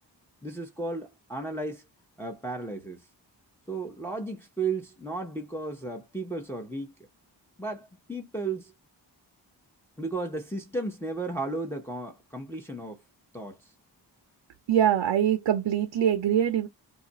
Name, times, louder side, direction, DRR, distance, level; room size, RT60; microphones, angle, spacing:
voice 1, 0.4-1.8 2.2-3.1 3.7-6.9 7.6-8.7 10.0-13.0 13.3-13.6, right 3 dB, 5° left, 0.7 m, -34 dB
voice 2, 14.7-16.7, right 10 dB, 90° right, 0.5 m, -23 dB
2.6 x 2.4 x 4.0 m
wide cardioid pair, 70°, 43 cm